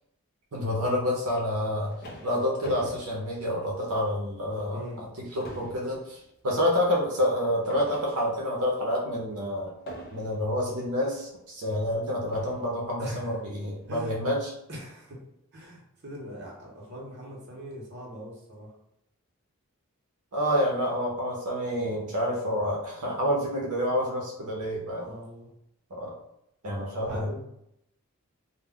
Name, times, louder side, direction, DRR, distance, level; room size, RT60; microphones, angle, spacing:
voice 1, 0.5-1.9 2.2-4.8 5.3-6.2 6.4-9.7 10.1-14.5 20.3-25.1 25.9-26.1 26.6-27.3, equal, 80° right, -2 dB, 0.6 m, -28 dB
sound 1, 1.6-4.2 4.6-4.8 5.1-8.6 9.9-10.6 11.5-11.6 12.3-12.8, equal, 45° left, 0.5 m, -45 dB
voice 2, 4.7-5.1 13.0-13.4 13.9-14.3 14.7-15.2 15.5-18.7 25.0-25.5 26.8-27.4, equal, 50° right, -3 dB, 0.7 m, -41 dB
2.2 x 2.0 x 3.5 m, 0.78 s
head